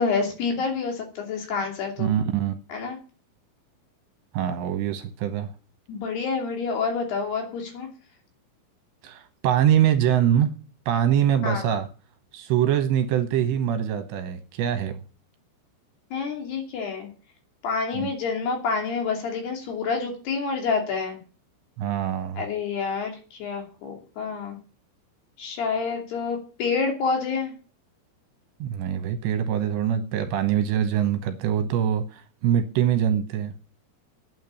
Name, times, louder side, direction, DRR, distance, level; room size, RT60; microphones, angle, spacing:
voice 1, 0.0-2.1 2.7-3.0 5.9-7.9 11.4-11.6 16.1-17.1 17.6-21.2 22.4-23.1 23.4-24.6 25.4-27.5, left 5 dB, 60° left, 2 dB, 4.5 m, -28 dB
voice 2, 2.0-2.6 4.3-5.5 9.0-10.5 10.9-11.9 12.3-15.0 17.9-18.1 21.8-22.4 28.6-33.5, right 10 dB, 75° right, 8 dB, 2.9 m, -24 dB
9.4 x 9.0 x 8.2 m, 0.36 s
omnidirectional pair, 5.7 m